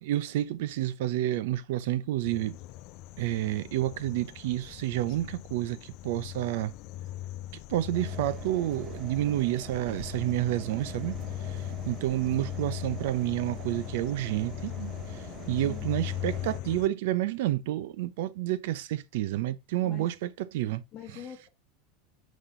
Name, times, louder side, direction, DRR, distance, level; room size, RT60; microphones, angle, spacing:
voice 1, 0.0-2.6 3.2-6.7 7.7-11.1 11.9-14.9 15.5-20.8, right 14 dB, 70° right, 0.8 m, -29 dB
sound 1, 2.2-16.9, left 14 dB, 50° left, 0.4 m, -39 dB
sound 2, 7.9-16.6, right 9 dB, 35° right, 0.8 m, -45 dB
voice 2, 20.9-21.5, left 9 dB, 30° left, 1.3 m, -43 dB
5.9 x 5.2 x 3.8 m
supercardioid pair, 150°, 0 cm